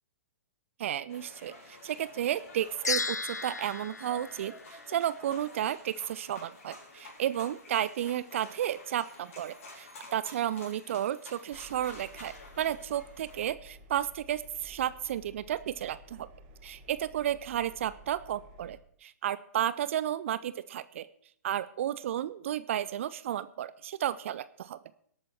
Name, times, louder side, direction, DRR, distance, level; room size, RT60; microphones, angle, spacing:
voice 1, 0.8-16.3 16.6-21.1 21.4-24.8, right 11 dB, 50° right, 16 dB, 0.5 m, -33 dB
sound 1, 1.1-13.4, left 2 dB, 55° left, 4.6 m, -50 dB
sound 2, 2.8-5.3, left 3 dB, 85° left, 0.4 m, -35 dB
Engine, 11.5-18.8, equal, 35° right, 1.7 m, -54 dB
18.5 x 8.7 x 4.4 m, 0.65 s
figure-of-eight pair, 115°, 9 cm